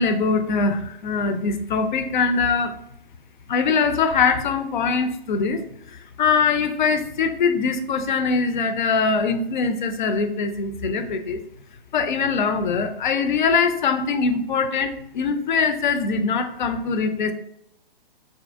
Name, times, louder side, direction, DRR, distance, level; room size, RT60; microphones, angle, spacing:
voice 1, 0.0-2.8 3.5-5.6 5.9-11.4 11.9-17.3, left 5 dB, 55° left, 8 dB, 0.4 m, -22 dB
4.1 x 2.5 x 2.5 m, 0.75 s
figure-of-eight pair, 130°, 29 cm